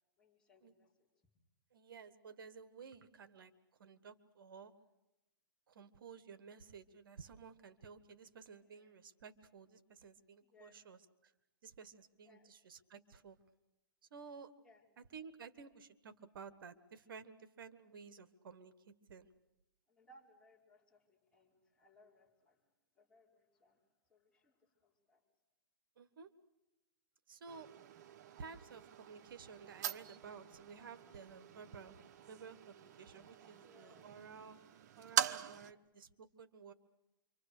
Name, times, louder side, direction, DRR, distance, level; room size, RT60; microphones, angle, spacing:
voice 1, 0.2-1.1 8.6-9.0 10.4-10.8 12.2-12.7 14.6-14.9 19.9-22.6 22.9-23.8 24.1-25.2 33.5-34.1 35.5-35.9, left 1 dB, 5° left, -5 dB, 4.9 m, -67 dB
voice 2, 1.7-3.5 3.8-4.7 5.7-11.3 11.6-13.4 14.1-14.5 15.1-19.3 26.0-26.3 27.3-27.7 28.4-34.6 35.0-36.7, right 5 dB, 70° right, 11 dB, 1.5 m, -54 dB
sound 1, 27.5-35.7, right 9 dB, 50° right, 1.1 m, -43 dB
27.5 x 25.0 x 6.7 m, 0.98 s
hypercardioid pair, 145°, 12 cm